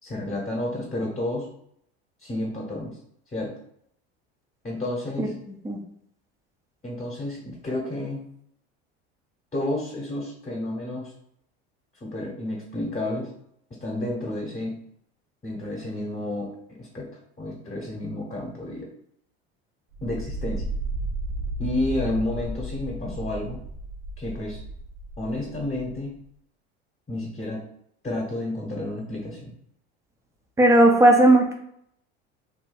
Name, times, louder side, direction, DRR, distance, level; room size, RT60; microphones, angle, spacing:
voice 1, 0.0-1.5 2.2-3.0 3.3-3.5 4.6-5.3 6.8-8.2 9.5-11.1 12.0-13.3 13.8-14.8 15.4-17.1 17.4-18.9 20.0-20.6 21.6-23.6 24.2-24.6 25.2-26.1 27.1-27.6 28.0-29.5, left 1 dB, 20° left, -3 dB, 1.0 m, -31 dB
sound 1, 19.9-26.0, right 1 dB, 65° right, 0.9 m, -33 dB
voice 2, 30.6-31.5, right 1 dB, 10° right, 2 dB, 0.6 m, -16 dB
2.7 x 2.2 x 4.0 m, 0.71 s
hypercardioid pair, 85°, 33 cm